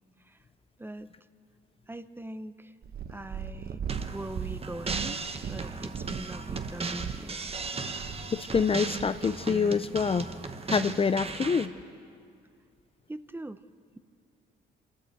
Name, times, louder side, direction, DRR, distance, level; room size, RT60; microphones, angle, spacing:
voice 1, 1.9-2.7 3.1-3.8 4.1-7.4 13.1-13.6, right 1 dB, 10° right, 12 dB, 0.7 m, -41 dB
Purr, 2.8-9.2 9.9-10.0, right 7 dB, 50° right, 0.9 m, -38 dB
sound 1, 3.9-11.7, right 4 dB, 30° right, 1.1 m, -37 dB
voice 2, 8.3-10.3 10.7-11.7, left 5 dB, 30° left, 12 dB, 0.5 m, -26 dB
26.5 x 13.0 x 7.8 m, 2.4 s
cardioid pair, 90°, 20 cm